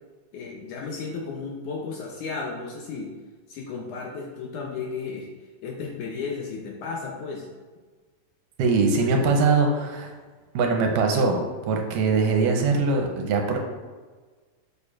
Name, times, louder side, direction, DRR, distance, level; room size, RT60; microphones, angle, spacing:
voice 1, 0.3-3.1 3.5-5.3 5.6-7.5, left 4 dB, 75° left, 0 dB, 1.8 m, -34 dB
voice 2, 8.6-10.1 10.5-11.4 11.7-13.6, right 4 dB, 80° right, 2 dB, 2.2 m, -22 dB
6.7 x 6.6 x 2.4 m, 1.4 s
omnidirectional pair, 4.0 m